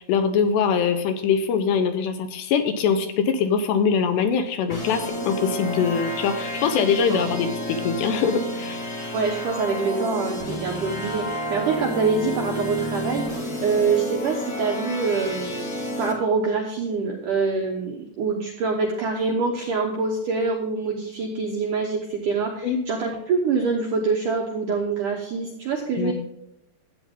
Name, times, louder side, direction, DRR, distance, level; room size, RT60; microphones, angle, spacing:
voice 1, 0.0-8.8 22.6-22.8 26.0-26.1, left 6 dB, 75° left, 7 dB, 2.8 m, -23 dB
sound 1, 4.7-16.1, left 1 dB, 45° left, 1.2 m, -30 dB
voice 2, 9.1-26.1, right 4 dB, 75° right, 0 dB, 1.9 m, -25 dB
13.0 x 8.8 x 3.6 m, 0.80 s
omnidirectional pair, 5.3 m